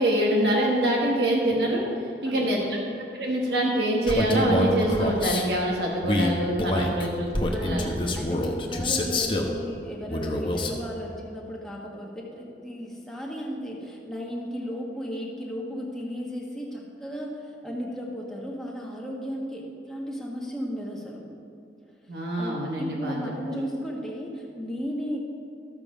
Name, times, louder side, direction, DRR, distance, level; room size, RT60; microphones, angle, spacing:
voice 1, 0.0-1.9 2.2-2.6 3.1-7.3 7.5-7.9 22.1-23.2, right 1 dB, 70° right, -2 dB, 1.4 m, -25 dB
voice 2, 2.2-2.8 6.9-21.3 22.4-25.2, equal, 5° left, -3 dB, 1.5 m, -35 dB
Male speech man speaking, 4.1-5.4 6.0-9.5 10.1-10.8, left 1 dB, 30° left, 0.9 m, -26 dB
12.5 x 7.4 x 5.0 m, 2.4 s
head